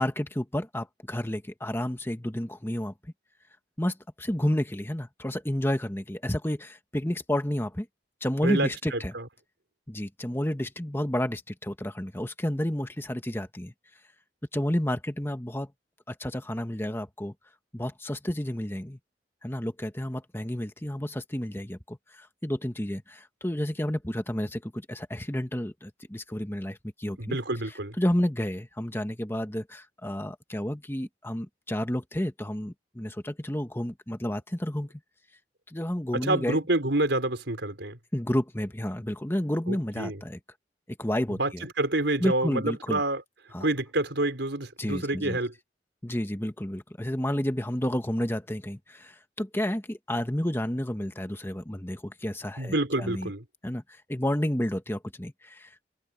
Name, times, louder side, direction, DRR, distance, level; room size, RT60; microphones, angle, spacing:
voice 1, 0.0-2.9 3.8-7.9 8.2-9.1 9.9-13.7 14.5-15.7 16.1-17.3 17.7-19.0 19.4-27.4 27.7-34.9 35.7-36.6 38.1-40.4 40.9-41.6 42.2-43.0 43.5-43.7 44.8-45.4 46.0-53.3 53.6-53.8 54.1-55.9, left 1 dB, 15° left, 1.5 m, -31 dB
voice 2, 8.4-9.2 27.2-27.9 36.2-38.0 39.7-40.2 41.4-43.2 43.6-45.5 52.6-53.4, right 2 dB, 85° right, 4.3 m, -28 dB
head